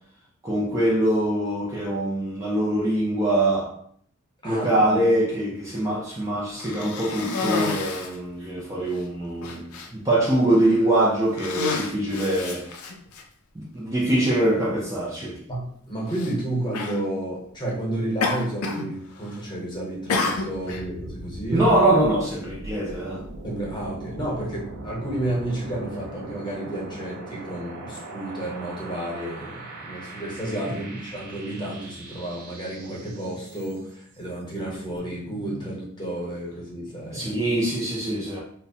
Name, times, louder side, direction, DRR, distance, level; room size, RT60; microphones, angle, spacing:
voice 1, 0.4-3.7 4.4-12.7 13.6-15.4 21.5-23.2 30.7-30.9 37.1-38.4, right 1 dB, 15° right, -6 dB, 0.4 m, -23 dB
voice 2, 4.4-5.1 5.4-5.5 15.5-21.7 23.4-37.4, right 1 dB, 20° left, -4 dB, 0.8 m, -31 dB
Cough, 6.6-8.2 8.9-9.0 9.4-9.9 10.6-10.9 11.3-13.2 14.2-14.3 16.1-16.3 16.7-17.0 18.2-18.9 19.2-19.6 20.1-20.8, left 4 dB, 80° left, 0.4 m, -29 dB
sound 1, 20.2-34.0, right 2 dB, 70° right, 0.5 m, -40 dB
2.8 x 2.1 x 2.7 m, 0.63 s
head